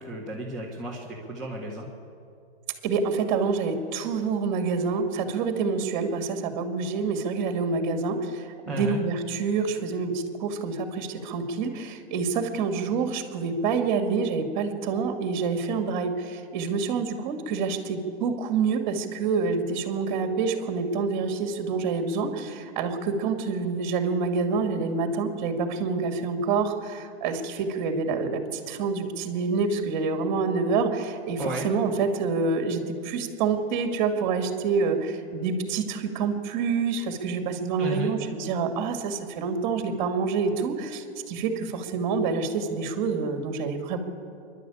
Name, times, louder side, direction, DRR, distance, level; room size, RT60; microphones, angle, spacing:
voice 1, 0.0-1.9 8.7-9.0 31.4-31.7 37.8-38.1, right 1 dB, ahead, -3 dB, 1.8 m, -33 dB
voice 2, 2.8-44.0, right 4 dB, 30° right, 5 dB, 2.3 m, -27 dB
27.5 x 11.5 x 8.7 m, 2.4 s
hypercardioid pair, 165°, 33 cm